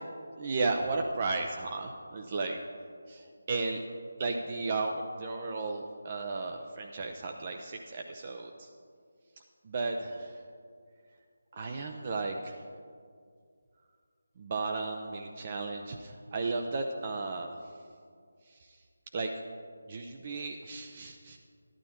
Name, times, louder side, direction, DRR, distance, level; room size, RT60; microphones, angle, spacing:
voice 1, 0.4-2.6 3.1-3.8 4.2-8.7 9.6-10.4 11.5-12.6 14.4-17.5 18.5-18.7 19.1-19.3 19.9-21.4, right 3 dB, 30° right, 3 dB, 0.6 m, -34 dB
12.5 x 11.5 x 4.3 m, 2.2 s
figure-of-eight pair, 155°, 0 cm